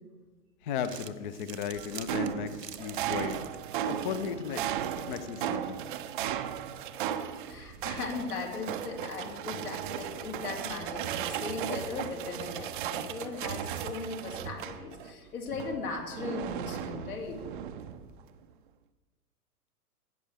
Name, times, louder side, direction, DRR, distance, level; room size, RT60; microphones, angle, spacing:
voice 1, 0.6-3.4 3.9-4.6 5.0-5.8, left 8 dB, 30° left, 13 dB, 0.6 m, -35 dB
Crumpling crinkling, 0.6-5.9, right 8 dB, 85° right, 0.8 m, -49 dB
sound 1, 1.7-15.1 15.5-18.2, right 9 dB, 35° right, 0.5 m, -36 dB
voice 2, 7.5-17.4, left 4 dB, 65° left, 1 dB, 2.7 m, -38 dB
16.0 x 7.9 x 3.5 m, 1.3 s
figure-of-eight pair, 110°, 47 cm